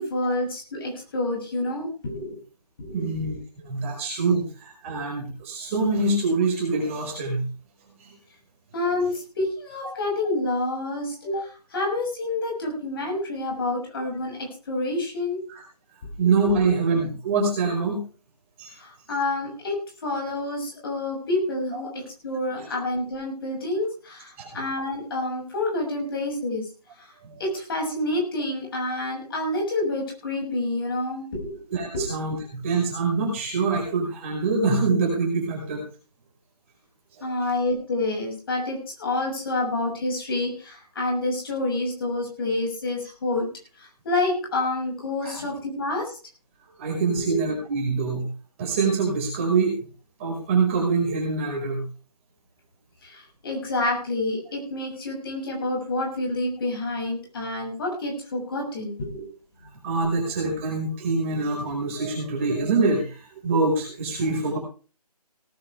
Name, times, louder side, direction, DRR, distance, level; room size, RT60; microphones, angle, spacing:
voice 1, 0.0-2.4 2.8-3.2 8.7-15.4 16.2-16.3 18.7-19.8 20.0-26.6 27.0-27.1 27.4-31.6 31.9-32.1 37.2-43.5 43.8-46.2 47.2-47.4 53.0-59.3, left 2 dB, 35° left, 0 dB, 6.4 m, -28 dB
voice 2, 2.9-7.4 8.0-8.1 15.5-15.6 16.2-18.0 18.6-18.7 21.7-21.8 22.5-22.7 24.4-24.5 27.2-27.4 31.7-35.8 37.2-37.3 45.2-45.4 46.8-48.3 48.6-49.8 50.2-51.8 59.8-64.6, right 4 dB, 20° right, -1 dB, 4.9 m, -25 dB
18.5 x 12.0 x 3.4 m, 0.36 s
figure-of-eight pair, 155°, 21 cm